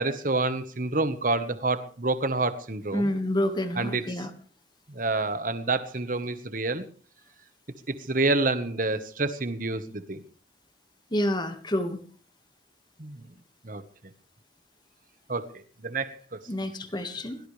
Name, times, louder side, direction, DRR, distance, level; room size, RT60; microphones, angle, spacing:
voice 1, 0.0-3.1 3.8-4.3 4.9-6.9 7.9-10.2 13.0-13.3 13.6-13.8 15.3-16.4, right 3 dB, 50° right, 11 dB, 1.3 m, -28 dB
voice 2, 2.9-4.3 11.1-12.0 16.5-17.4, left 1 dB, 25° left, 8 dB, 1.7 m, -28 dB
21.5 x 18.5 x 3.4 m, 0.41 s
head